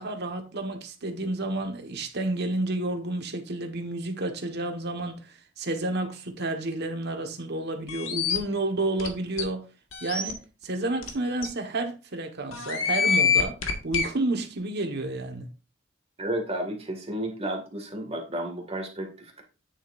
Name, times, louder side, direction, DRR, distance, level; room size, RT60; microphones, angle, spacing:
voice 1, 0.0-9.6 10.0-13.6 13.8-15.5, right 2 dB, 55° right, 1.5 m, -30 dB
sound 1, 7.9-8.4 9.0-9.1 9.4-9.5 9.9-10.3 11.0-11.1 11.4-11.5 12.5-14.1, left 6 dB, 80° left, 1.8 m, -25 dB
voice 2, 16.2-19.4, right 1 dB, 30° right, 2.2 m, -32 dB
9.5 x 7.5 x 2.6 m
head